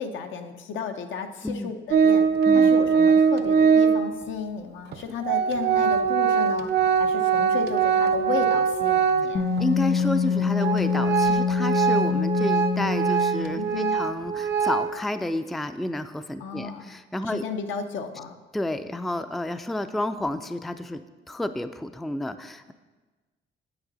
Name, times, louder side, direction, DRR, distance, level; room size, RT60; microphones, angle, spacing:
voice 1, 0.0-2.3 2.5-9.5 13.6-14.0 16.4-16.9 17.3-18.4, left 5 dB, 75° left, 6 dB, 0.8 m, -33 dB
Organ, 1.9-4.2 4.9-5.0 5.2-9.6 10.0-10.1 10.6-15.0, right 6 dB, 55° right, 0.6 m, -22 dB
Wind instrument woodwind instrument, 9.3-13.8, left 6 dB, 50° left, 1.3 m, -25 dB
voice 2, 9.6-17.4 18.5-22.7, left 1 dB, ahead, 10 dB, 0.3 m, -30 dB
8.7 x 8.3 x 4.0 m, 1.3 s
cardioid pair, 90°, 20 cm